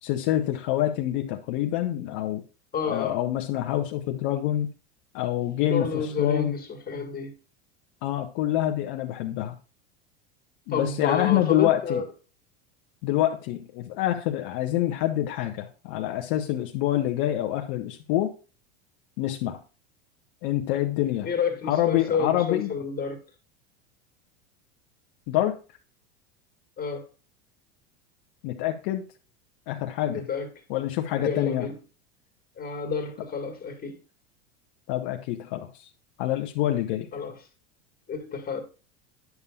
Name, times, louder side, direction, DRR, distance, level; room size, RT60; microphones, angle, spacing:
voice 1, 0.0-2.4 2.9-4.7 5.1-6.6 8.0-9.6 10.7-12.0 13.0-18.3 19.2-19.6 20.4-21.3 21.7-22.7 25.3-25.6 28.4-29.0 29.7-30.3 30.7-31.7 34.9-35.9 36.2-37.1, left 13 dB, 60° left, 0.9 m, -26 dB
voice 2, 2.7-3.2 5.6-7.3 10.7-12.1 21.2-23.2 26.8-27.1 30.0-30.5 31.2-31.8 32.6-34.0 37.1-37.3 38.1-38.6, left 5 dB, 25° left, 1.8 m, -30 dB
9.4 x 6.9 x 2.3 m
hypercardioid pair, 100°, 33 cm